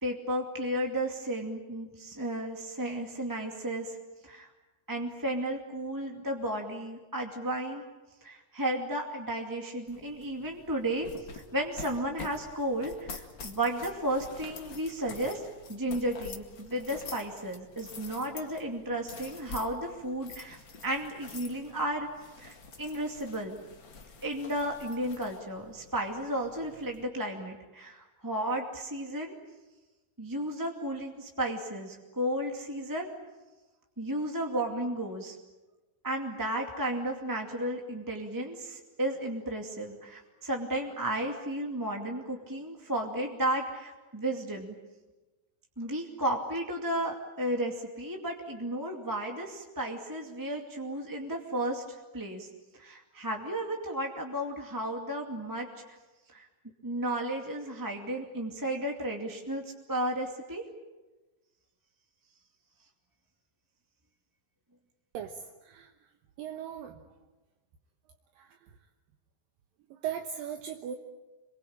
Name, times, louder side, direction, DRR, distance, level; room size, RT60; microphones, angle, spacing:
voice 1, 0.0-4.0 4.2-4.5 4.9-7.8 8.2-11.1 11.3-15.4 15.7-20.6 20.8-22.1 22.4-23.6 24.2-29.3 30.2-33.1 34.0-35.3 36.0-44.7 45.8-52.5 52.8-55.7 56.3-56.4 56.8-59.6 59.9-60.6, right 1 dB, 10° right, 1 dB, 1.5 m, -33 dB
sound 1, 9.9-27.0, left 4 dB, 40° left, 2.3 m, -47 dB
voice 2, 65.1-65.9 66.4-67.0 68.4-68.7 69.9-71.0, right 9 dB, 70° right, 4 dB, 2.8 m, -38 dB
27.5 x 23.0 x 8.8 m, 1.1 s
omnidirectional pair, 4.3 m